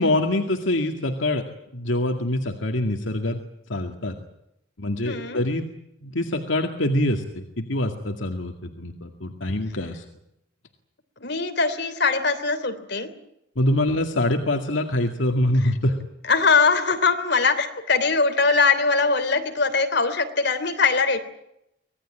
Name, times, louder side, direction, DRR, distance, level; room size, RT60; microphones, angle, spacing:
voice 1, 0.0-1.4 1.7-3.4 3.7-4.2 4.8-5.7 6.0-10.0 13.6-16.0, left 1 dB, 75° left, 4 dB, 2.1 m, -24 dB
voice 2, 5.0-5.4 11.2-13.1 15.6-15.7 16.2-21.2, left 4 dB, 60° left, 8 dB, 3.3 m, -21 dB
25.5 x 19.0 x 9.0 m, 0.81 s
head